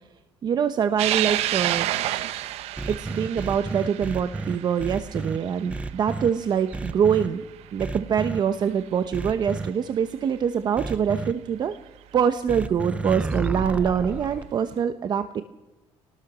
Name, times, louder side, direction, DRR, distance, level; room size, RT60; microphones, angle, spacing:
voice 1, 0.4-1.9 2.9-7.4 7.7-11.7 12.1-15.4, right 7 dB, 40° right, 10 dB, 1.0 m, -24 dB
sound 1, 1.0-7.7 8.1-8.2 9.4-9.5 11.7-11.8 13.2-13.5, right 14 dB, 75° right, 0.9 m, -30 dB
sound 2, 2.8-5.4 5.7-6.3 6.7-7.3 7.8-8.4 9.1-9.7 10.8-11.3 12.5-14.4, right 3 dB, 10° right, 0.7 m, -31 dB
24.0 x 18.5 x 6.2 m, 1.1 s
cardioid pair, 135°, 11 cm